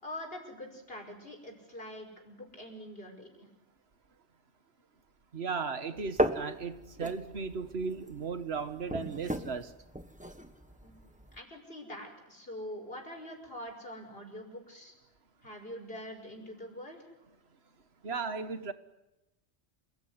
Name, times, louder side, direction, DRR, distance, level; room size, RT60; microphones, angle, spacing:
voice 1, 0.0-3.5 10.8-14.9 15.4-17.0, left 1 dB, 60° left, 6.0 m, -44 dB
voice 2, 5.3-9.7 18.0-18.7, right 5 dB, 65° right, 1.7 m, -36 dB
sound 1, 6.0-11.4, right 1 dB, 5° right, 1.5 m, -36 dB
28.5 x 20.5 x 9.7 m
omnidirectional pair, 1.1 m